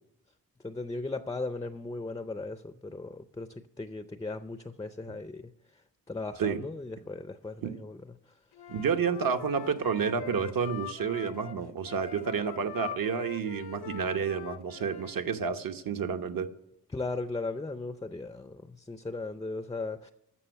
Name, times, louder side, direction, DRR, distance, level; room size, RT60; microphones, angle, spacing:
voice 1, 0.6-5.5 6.1-8.1 16.9-20.1, left 3 dB, 10° left, 0.4 m, -37 dB
Wind instrument woodwind instrument, 8.5-15.2, left 10 dB, 85° left, 0.7 m, -43 dB
voice 2, 8.7-16.5, right 6 dB, 60° right, 1.0 m, -30 dB
12.5 x 7.0 x 7.9 m
wide cardioid pair, 115°, 38 cm